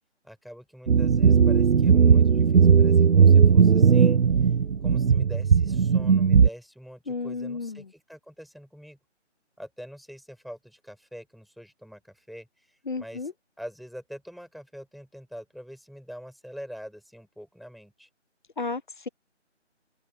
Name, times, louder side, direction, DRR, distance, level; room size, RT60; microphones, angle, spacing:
voice 1, 0.2-4.2 4.8-9.0 9.6-13.3 13.6-18.1, equal, ahead, 3.9 m, -44 dB
sound 1, 0.9-6.5, right 6 dB, 80° right, 0.6 m, -18 dB
voice 2, 7.1-7.9 12.9-13.3 18.6-19.1, left 3 dB, 45° left, 1.6 m, -33 dB
open air
figure-of-eight pair, 160°, 36 cm